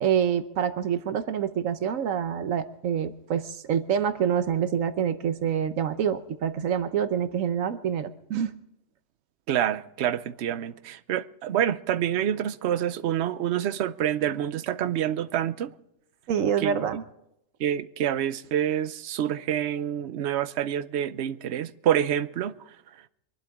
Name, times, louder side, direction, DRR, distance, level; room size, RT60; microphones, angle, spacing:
voice 1, 0.0-8.6 16.3-17.0, right 8 dB, 85° right, 1.2 m, -26 dB
voice 2, 9.5-15.7 16.6-16.8 17.6-22.5, right 10 dB, 60° right, 0.9 m, -27 dB
24.5 x 11.5 x 3.6 m
omnidirectional pair, 1.3 m